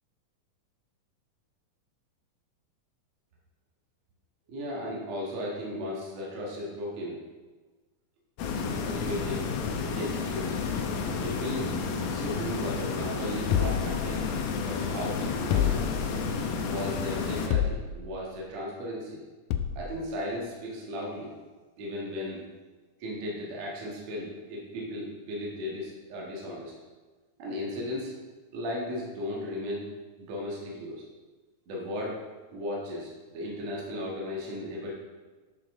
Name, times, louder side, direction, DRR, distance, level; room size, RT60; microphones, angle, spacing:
voice 1, 4.5-7.2 8.8-9.5 9.9-10.6 11.2-11.7 12.1-14.3 14.6-16.0 16.6-19.2 19.7-21.3 21.8-22.4 23.0-26.7 27.4-28.1 28.5-29.9 30.2-31.0 31.7-32.2 32.5-34.9, left 1 dB, 55° right, -4 dB, 2.6 m, -36 dB
sound 1, 8.4-17.5, left 5 dB, 75° left, 2.3 m, -31 dB
sound 2, 13.5-14.6 15.5-16.4 17.5-18.2 19.5-20.0, left 9 dB, 90° left, 1.7 m, -29 dB
11.5 x 6.7 x 3.7 m, 1.3 s
omnidirectional pair, 4.1 m